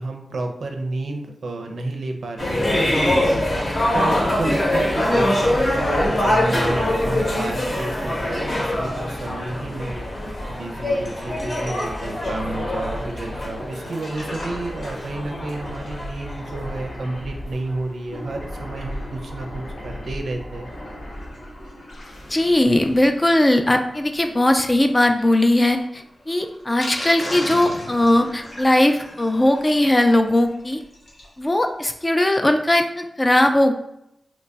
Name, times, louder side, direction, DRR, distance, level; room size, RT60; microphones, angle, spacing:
voice 1, 0.0-20.7, right 2 dB, 80° right, 4 dB, 0.5 m, -31 dB
sound 1, 2.4-16.7, left 1 dB, 35° left, 0.7 m, -24 dB
sound 2, 5.1-24.0, left 1 dB, 70° left, 0.8 m, -37 dB
Sink (filling or washing), 13.4-31.4 31.7-31.8 32.0-32.1 32.5-32.6, left 1 dB, 90° left, 1.1 m, -39 dB
voice 2, 22.3-30.8 31.4-33.7, left 1 dB, 20° left, 6 dB, 0.3 m, -19 dB
3.0 x 2.2 x 3.9 m, 0.79 s
wide cardioid pair, 105°, 0 cm